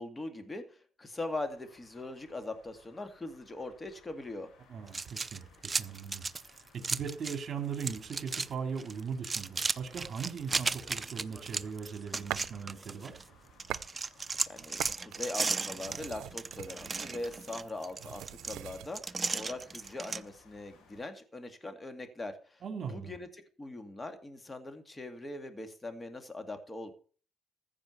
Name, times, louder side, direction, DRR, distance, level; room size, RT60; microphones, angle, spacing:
voice 1, 0.0-4.5 14.5-22.6 22.9-23.3 23.6-26.9, left 2 dB, 20° left, 7 dB, 2.2 m, -41 dB
sound 1, 1.2-21.0, left 5 dB, 90° left, 4.5 m, -63 dB
voice 2, 4.7-6.3 6.5-13.1 22.6-23.1, right 6 dB, 50° right, 6 dB, 3.0 m, -39 dB
sound 2, 4.9-7.4 7.7-8.5 8.8-13.2 13.6-20.2, right 4 dB, 30° right, 0.6 m, -35 dB
sound 3, 11.2-12.6 13.0-13.9 14.2-18.9, right 14 dB, 90° right, 0.5 m, -44 dB
15.0 x 5.0 x 8.1 m, 0.42 s
cardioid pair, 90°, 0 cm